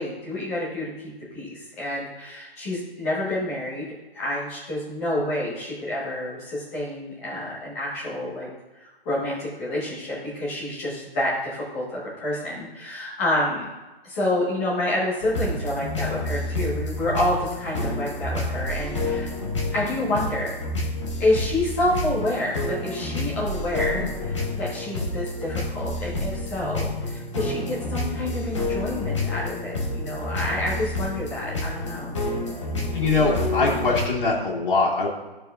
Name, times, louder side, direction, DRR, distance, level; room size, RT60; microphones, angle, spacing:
voice 1, 0.0-3.8 4.1-8.5 8.7-13.7 14.0-19.3 19.7-20.5 21.2-32.1, left 1 dB, 15° left, -7 dB, 1.4 m, -28 dB
sound 1, 15.2-34.0, left 2 dB, 30° left, 1.1 m, -29 dB
voice 2, 32.9-35.1, left 3 dB, 60° left, -3 dB, 2.3 m, -22 dB
14.0 x 4.7 x 2.5 m, 1.1 s
hypercardioid pair, 175°, 30 cm